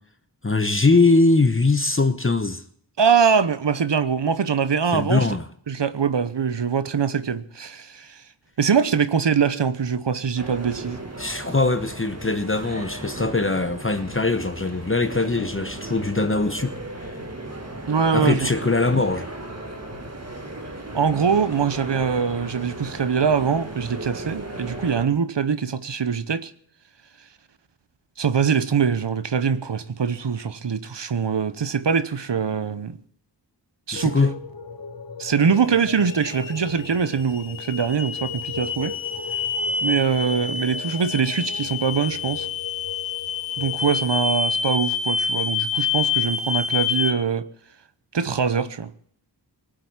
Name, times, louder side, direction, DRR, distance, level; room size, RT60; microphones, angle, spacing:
voice 1, 0.4-2.6 4.9-5.5 11.2-17.1 18.1-19.3 33.9-34.3, left 3 dB, 30° left, 1.0 m, -21 dB
voice 2, 3.0-5.3 5.7-8.2 8.6-11.0 17.9-18.5 20.9-26.5 28.2-33.0 33.9-34.2 35.2-38.9 39.8-42.5 43.6-47.5 48.1-48.9, right 6 dB, 70° right, 1.0 m, -23 dB
sound 1, 10.4-25.1, right 1 dB, 35° right, 2.1 m, -36 dB
sound 2, 34.0-44.1, left 5 dB, 50° left, 1.4 m, -39 dB
sound 3, 35.4-47.1, left 5 dB, 85° left, 1.4 m, -27 dB
19.5 x 7.8 x 8.3 m
wide cardioid pair, 70°, 45 cm